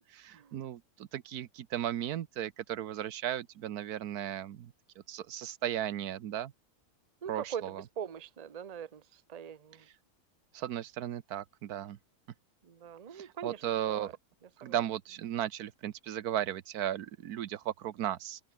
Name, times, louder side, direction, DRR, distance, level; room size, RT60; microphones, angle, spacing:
voice 1, 0.0-4.7 5.1-6.5 7.3-7.8 10.5-12.0 13.1-14.1 14.6-18.4, right 11 dB, 90° right, 1.4 m, -36 dB
voice 2, 7.2-9.8 12.6-14.1 14.6-14.8, right 8 dB, 35° right, 0.8 m, -42 dB
omnidirectional pair, 1.6 m